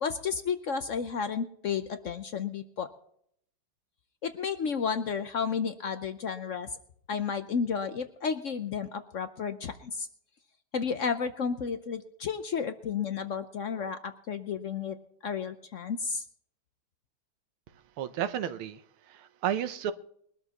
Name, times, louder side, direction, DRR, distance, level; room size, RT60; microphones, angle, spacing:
voice 1, 0.0-2.9 4.2-6.7 7.1-10.1 10.7-15.0 15.2-16.2, left 6 dB, 75° left, 9 dB, 0.7 m, -32 dB
voice 2, 18.0-18.8 19.1-19.9, right 9 dB, 85° right, 11 dB, 1.7 m, -32 dB
22.0 x 12.5 x 3.0 m, 0.66 s
omnidirectional pair, 2.3 m